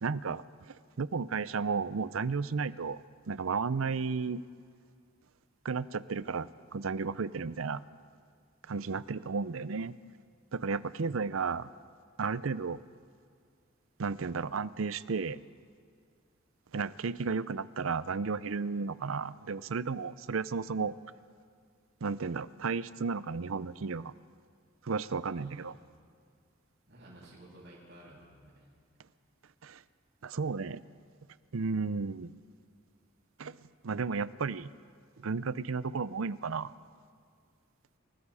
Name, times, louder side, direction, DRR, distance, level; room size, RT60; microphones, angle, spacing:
voice 1, 0.0-4.4 5.6-7.8 8.7-9.9 10.5-11.7 12.2-12.8 14.0-15.4 16.7-20.9 22.0-24.1 24.8-25.8 29.6-29.8 30.2-30.8 31.5-32.3 33.4-33.6 33.8-34.7 35.2-36.7, right 5 dB, 90° right, 17 dB, 0.6 m, -33 dB
voice 2, 25.3-25.7 26.9-28.7, right 1 dB, 55° right, -11 dB, 7.7 m, -54 dB
28.5 x 19.0 x 4.9 m, 2.1 s
head